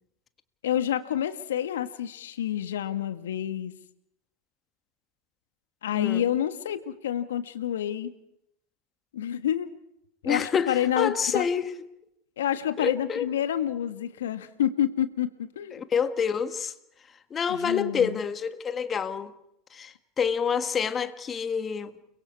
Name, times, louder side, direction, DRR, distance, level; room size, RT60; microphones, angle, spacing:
voice 1, 0.6-3.7 5.8-8.1 9.1-9.7 10.2-11.5 12.4-15.8 17.5-18.2, left 10 dB, 70° left, 1.6 m, -28 dB
voice 2, 10.2-11.7 12.8-13.3 15.7-16.7 17.3-19.3 19.7-21.9, left 6 dB, 25° left, 1.5 m, -28 dB
30.0 x 22.5 x 4.8 m
figure-of-eight pair, 85°, 0 cm